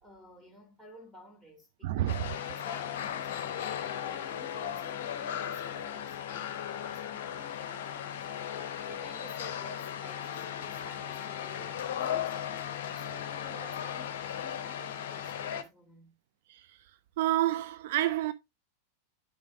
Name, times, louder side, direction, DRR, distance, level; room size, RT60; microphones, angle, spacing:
voice 1, 0.0-12.4 12.9-16.1, equal, ahead, 2.9 m, -53 dB
voice 2, 1.8-2.2 16.5-16.8 17.2-18.3, right 14 dB, 55° right, 0.4 m, -29 dB
sound 1, 2.1-15.6, left 9 dB, 55° left, 0.9 m, -36 dB
9.7 x 6.1 x 2.4 m
figure-of-eight pair, 90°, 0 cm